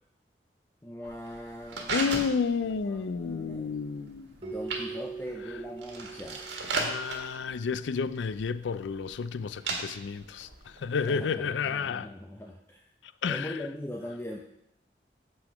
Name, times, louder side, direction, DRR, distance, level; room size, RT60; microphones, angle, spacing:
voice 1, 0.8-2.2 2.6-3.8 4.4-6.6 11.1-12.8 13.3-14.4, left 1 dB, 10° left, 0.5 m, -41 dB
sound 1, 1.0-11.1, right 3 dB, 90° right, 1.7 m, -38 dB
voice 2, 1.9-4.3 6.7-10.5 10.8-12.1 13.2-13.5, left 5 dB, 90° left, 0.4 m, -31 dB
Keyboard (musical), 4.4-7.3, right 4 dB, 30° right, 1.0 m, -41 dB
7.8 x 5.9 x 5.1 m
head